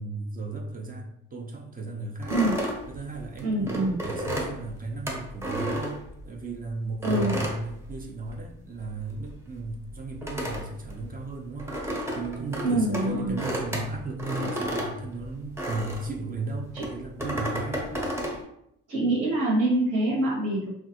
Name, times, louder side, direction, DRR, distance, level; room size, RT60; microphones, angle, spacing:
voice 1, 0.0-2.4 2.9-17.9, right 3 dB, 30° right, 2 dB, 0.5 m, -35 dB
sound 1, 2.2-6.5 7.0-8.5 8.8-16.2 16.7-18.4, equal, 10° right, 0.9 m, -32 dB
voice 2, 3.4-4.0 7.0-7.3 12.6-13.3 16.7-16.9 18.9-20.7, right 1 dB, 55° right, -6 dB, 1.2 m, -25 dB
3.2 x 2.4 x 2.9 m, 0.76 s
cardioid pair, 90°, 30 cm